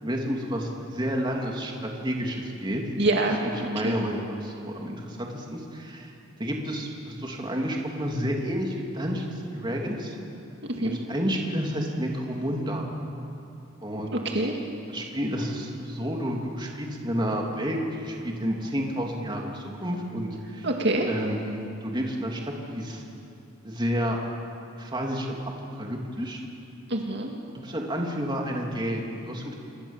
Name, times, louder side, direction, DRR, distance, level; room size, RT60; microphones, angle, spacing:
voice 1, 0.0-2.8 3.4-6.1 6.4-10.1 10.8-12.8 13.8-14.5 14.9-20.7 21.1-22.4 22.7-23.0 23.6-24.2 24.8-25.4 25.8-26.4 27.5-29.6, equal, 20° right, 0 dB, 3.0 m, -30 dB
voice 2, 3.0-3.9 10.7-11.0 14.2-14.5 20.6-21.1 26.9-27.3, right 2 dB, 55° right, 1 dB, 2.2 m, -26 dB
27.0 x 23.5 x 7.4 m, 2.8 s
head